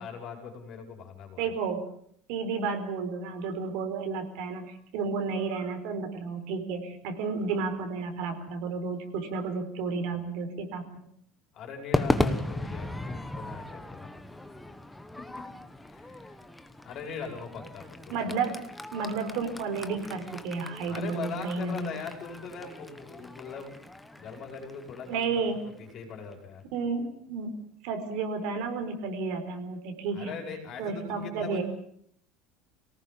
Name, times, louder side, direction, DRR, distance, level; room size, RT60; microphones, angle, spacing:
voice 1, 0.0-1.5 10.1-10.2 11.5-14.5 15.2-15.5 15.8-16.3 16.8-18.4 20.9-23.8 24.1-26.6 30.1-31.6, left 5 dB, 35° left, 3 dB, 5.1 m, -41 dB
voice 2, 1.4-1.8 2.3-11.0 18.1-18.6 18.9-21.9 25.1-25.6 26.7-27.6 27.8-30.4 30.8-31.6, right 4 dB, 60° right, 6 dB, 4.3 m, -32 dB
Crowd / Fireworks, 11.9-26.3, left 1 dB, 5° left, 1.1 m, -36 dB
24.5 x 18.5 x 7.4 m, 0.68 s
cardioid pair, 175°, 0 cm